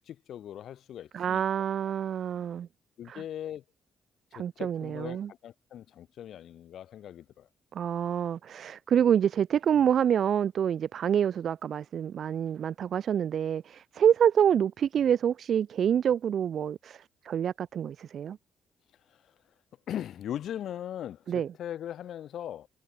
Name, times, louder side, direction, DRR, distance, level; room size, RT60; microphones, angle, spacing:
voice 1, 0.0-1.4 3.0-3.6 4.3-7.5 19.1-19.3 19.9-22.7, left 10 dB, 70° left, 2.8 m, -39 dB
voice 2, 1.1-2.7 3.1-3.2 4.3-5.3 7.7-18.4 21.3-21.5, right 8 dB, 60° right, 1.4 m, -27 dB
cardioid pair, 85°, 0 cm